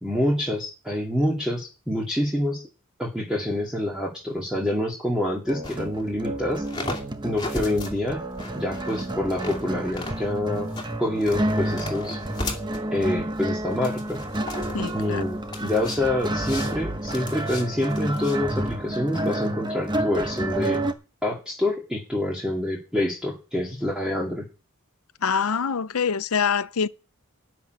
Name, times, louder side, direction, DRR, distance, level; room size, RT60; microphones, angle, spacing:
voice 1, 0.0-2.6 3.0-6.6 7.2-8.2 8.5-10.7 11.0-12.2 12.9-14.2 14.9-20.8 21.2-24.5, left 1 dB, 5° right, 2.2 m, -26 dB
sound 1, 5.5-20.9, right 1 dB, 20° right, 1.1 m, -30 dB
sound 2, 5.6-19.3, left 2 dB, 20° left, 2.4 m, -37 dB
voice 2, 14.7-15.2 25.2-26.9, left 6 dB, 75° left, 0.7 m, -25 dB
13.0 x 6.1 x 9.3 m
head